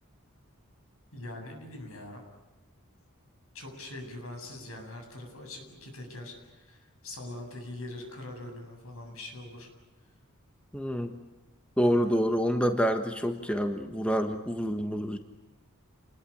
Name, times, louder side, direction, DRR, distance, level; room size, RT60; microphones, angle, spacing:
voice 1, 1.1-2.2 3.5-9.7 11.8-12.2, left 1 dB, 70° left, 4 dB, 7.9 m, -43 dB
voice 2, 10.7-11.1 11.8-15.2, equal, 5° left, 6 dB, 1.4 m, -27 dB
29.0 x 21.0 x 8.7 m, 1.0 s
head